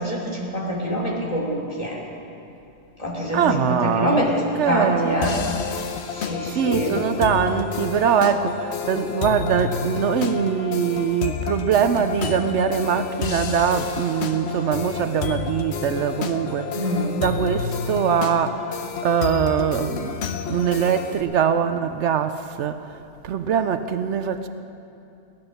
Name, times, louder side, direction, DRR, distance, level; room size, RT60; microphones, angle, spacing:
voice 1, 0.0-2.0 3.0-5.4 6.1-7.0 16.7-17.2, equal, 30° left, -4 dB, 2.9 m, -25 dB
voice 2, 3.3-4.3 4.6-5.4 6.5-20.2 20.5-23.0 23.2-24.5, right 7 dB, 75° right, 10 dB, 0.9 m, -23 dB
sound 1, 5.2-21.2, left 6 dB, 65° left, 1.0 m, -30 dB
16.5 x 12.0 x 6.5 m, 2.8 s
omnidirectional pair, 1.2 m